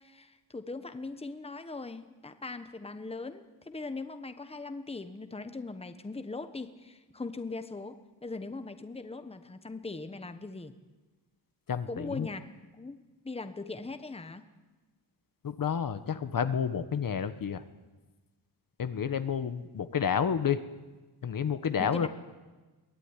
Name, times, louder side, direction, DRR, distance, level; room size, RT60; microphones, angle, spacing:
voice 1, 0.0-10.7 11.9-12.4 12.8-13.0 13.2-14.4 21.8-22.1, left 3 dB, 15° left, 9 dB, 1.3 m, -40 dB
voice 2, 11.7-12.3 15.4-17.6 18.8-20.6 21.2-22.1, left 7 dB, 60° left, 10 dB, 1.3 m, -30 dB
23.0 x 17.5 x 9.9 m, 1.2 s
wide cardioid pair, 140°, 39 cm